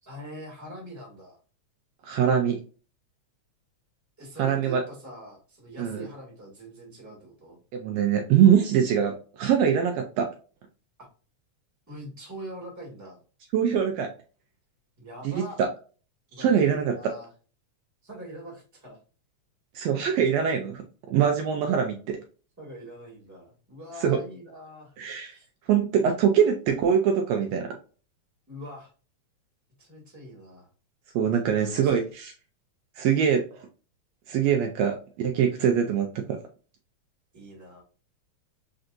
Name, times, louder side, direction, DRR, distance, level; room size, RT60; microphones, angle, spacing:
voice 1, 0.0-1.4 4.2-7.6 11.0-11.1 11.9-13.2 15.0-15.6 16.3-17.3 18.0-19.0 22.6-24.9 25.3-25.5 28.5-28.9 29.8-30.7 31.5-32.1 35.6-36.0 37.3-37.8, right 1 dB, 5° right, -2 dB, 1.5 m, -43 dB
voice 2, 2.0-2.6 4.4-4.8 5.8-6.0 7.7-10.3 13.5-14.1 15.2-15.7 16.4-17.1 19.7-22.2 24.0-24.2 25.0-25.3 25.7-27.8 31.1-32.3 33.0-33.6 34.3-36.1, right 8 dB, 75° right, 4 dB, 1.7 m, -23 dB
4.4 x 3.9 x 2.5 m, 0.37 s
omnidirectional pair, 3.3 m